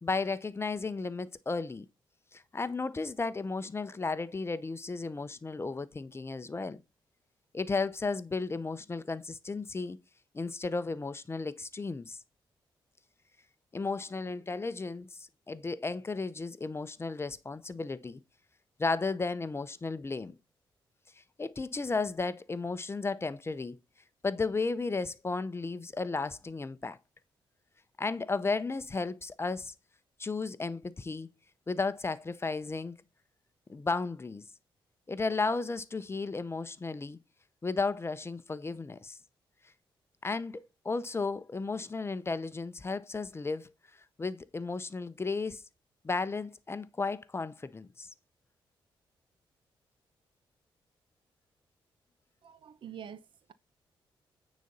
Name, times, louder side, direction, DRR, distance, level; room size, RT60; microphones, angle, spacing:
voice 1, 0.0-1.9 2.3-6.8 7.5-10.0 10.3-12.2 13.7-18.2 18.8-20.3 21.2-23.8 24.2-27.0 28.0-29.7 30.2-31.3 31.7-33.0 33.7-34.4 35.1-37.2 37.6-39.2 40.2-43.7 44.2-45.6 46.0-48.1, left 3 dB, 25° left, 0.7 m, -34 dB
voice 2, 52.4-53.5, right 9 dB, 60° right, 0.8 m, -47 dB
9.2 x 4.1 x 5.4 m
cardioid pair, 75°, 9 cm